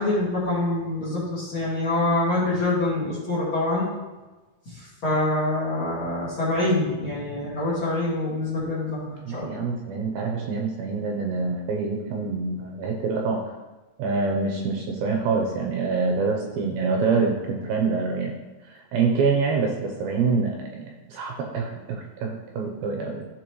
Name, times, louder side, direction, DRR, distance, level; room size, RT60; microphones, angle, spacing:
voice 1, 0.0-3.9 4.7-9.6, left 2 dB, 40° left, -8 dB, 2.3 m, -25 dB
voice 2, 9.3-13.4 14.0-18.4 18.6-23.3, right 4 dB, 75° right, 1 dB, 2.4 m, -26 dB
13.5 x 4.8 x 3.1 m, 1.2 s
omnidirectional pair, 4.9 m